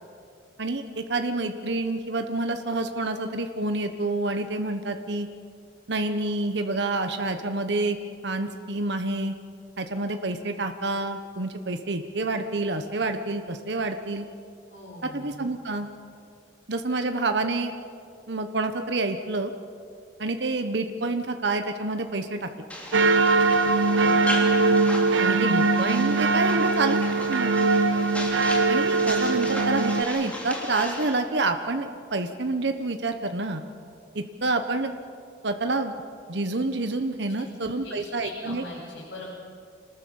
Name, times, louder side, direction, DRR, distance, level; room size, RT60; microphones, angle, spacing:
voice 1, 0.6-5.3 5.9-8.0 8.2-9.3 9.8-14.3 15.0-15.9 16.7-17.7 18.3-19.5 20.2-22.5 25.2-27.5 28.7-33.6 34.1-34.9 35.4-35.9 36.3-38.6, right 2 dB, 65° right, 7 dB, 1.1 m, -28 dB
voice 2, 14.7-15.4 23.7-24.5 37.3-39.2, left 2 dB, 60° left, -6 dB, 5.2 m, -42 dB
sound 1, 22.7-31.2, left 1 dB, 5° left, 3.1 m, -36 dB
sound 2, 22.9-30.0, right 3 dB, 80° right, 0.8 m, -21 dB
26.0 x 19.5 x 7.1 m, 2.3 s
head